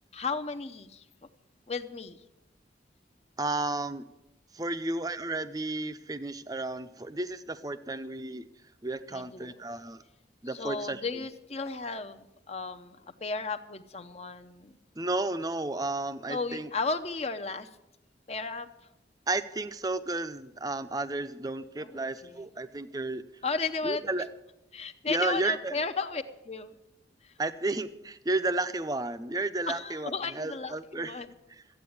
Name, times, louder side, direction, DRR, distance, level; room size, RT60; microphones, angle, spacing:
voice 1, 0.1-1.0 1.7-2.2 9.1-9.6 10.5-14.8 16.3-17.7 18.3-18.7 21.8-22.4 23.4-24.0 24.7-26.7 27.2-27.3 29.7-31.3, left 4 dB, 35° left, 8 dB, 0.7 m, -34 dB
voice 2, 3.4-4.0 4.5-8.5 8.8-10.0 10.4-11.0 15.0-16.7 19.3-23.2 23.8-24.3 25.1-25.8 27.4-31.1, right 2 dB, 20° right, 11 dB, 0.6 m, -32 dB
13.5 x 8.8 x 8.7 m, 0.92 s
head